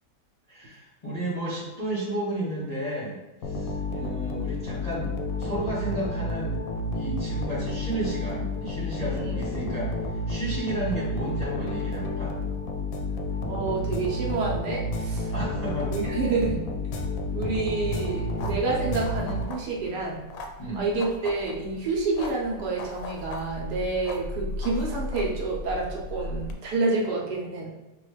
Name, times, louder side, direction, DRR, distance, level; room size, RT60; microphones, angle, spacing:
voice 1, 0.5-5.1 5.4-6.6 6.9-12.3 15.3-15.9 20.6-20.9, right 1 dB, 35° left, -7 dB, 0.6 m, -33 dB
sound 1, 3.4-19.9, left 1 dB, 70° left, 0.9 m, -30 dB
voice 2, 9.1-9.4 13.5-15.3 15.9-16.6 17.3-20.2 20.7-27.7, right 3 dB, 70° right, -2 dB, 1.4 m, -28 dB
sound 2, 17.8-26.5, left 2 dB, 90° left, 1.2 m, -37 dB
6.0 x 2.3 x 3.2 m, 1.0 s
omnidirectional pair, 1.8 m